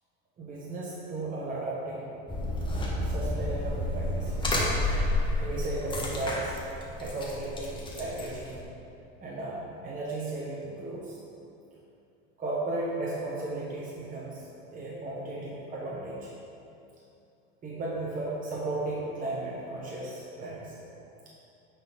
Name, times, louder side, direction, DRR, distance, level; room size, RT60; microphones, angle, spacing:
voice 1, 0.4-2.1 2.6-2.7 3.0-4.5 4.8-6.6 7.0-8.6 9.2-11.2 12.4-14.4 14.7-16.3 17.6-20.7, right 2 dB, 30° right, -5 dB, 1.2 m, -35 dB
sound 1, 2.3-8.6, left 1 dB, 15° left, 1.3 m, -30 dB
9.0 x 4.2 x 3.6 m, 2.7 s
supercardioid pair, 100°, 29 cm